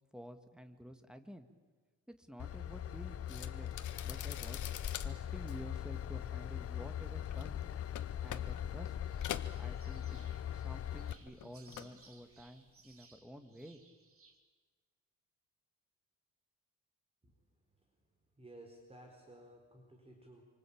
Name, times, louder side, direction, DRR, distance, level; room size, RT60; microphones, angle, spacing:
voice 1, 0.1-1.5 2.1-4.6 5.0-7.6 8.2-9.0 9.6-13.8, equal, 5° right, 8 dB, 2.0 m, -51 dB
Train / Engine, 2.4-11.1, left 10 dB, 50° left, 0.9 m, -40 dB
sound 1, 3.3-10.5 10.8-12.0 12.3-12.7, left 11 dB, 75° left, 1.5 m, -47 dB
sound 2, 9.0-14.4, right 5 dB, 45° right, 3.5 m, -64 dB
voice 2, 18.4-20.4, right 1 dB, 20° right, 2 dB, 4.4 m, -55 dB
27.0 x 25.0 x 8.8 m, 1.4 s
cardioid pair, 130°, 30 cm